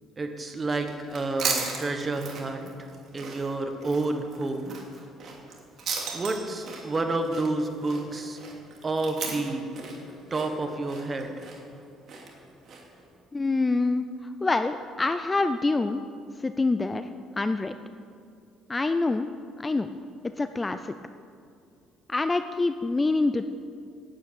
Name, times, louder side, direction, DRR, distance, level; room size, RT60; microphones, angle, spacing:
voice 1, 0.2-2.9 3.1-4.8 6.1-8.4 8.8-9.7 10.3-11.5, right 2 dB, 20° right, 6 dB, 1.2 m, -29 dB
sound 1, 0.8-13.0, right 4 dB, 50° right, 2.4 m, -37 dB
Doorbell, 6.0-7.9, right 7 dB, 70° right, 1.6 m, -44 dB
voice 2, 13.3-16.0 16.4-17.1 17.4-17.7 18.7-19.3 19.6-19.9 20.4-20.9 22.1-23.5, left 3 dB, 15° left, 10 dB, 0.4 m, -26 dB
11.0 x 8.2 x 8.8 m, 2.4 s
cardioid pair, 145°, 0 cm